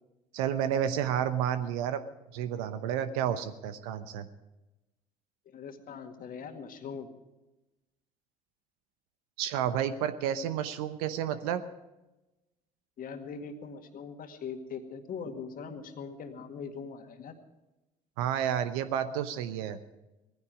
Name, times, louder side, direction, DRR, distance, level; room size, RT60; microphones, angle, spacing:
voice 1, 0.3-2.0 2.3-4.3 9.4-11.6 18.2-19.8, right 9 dB, 70° right, 11 dB, 0.9 m, -30 dB
voice 2, 5.5-7.1 13.0-17.4, left 6 dB, 50° left, 6 dB, 2.0 m, -41 dB
18.5 x 15.5 x 4.9 m, 1.0 s
figure-of-eight pair, 55°, 19 cm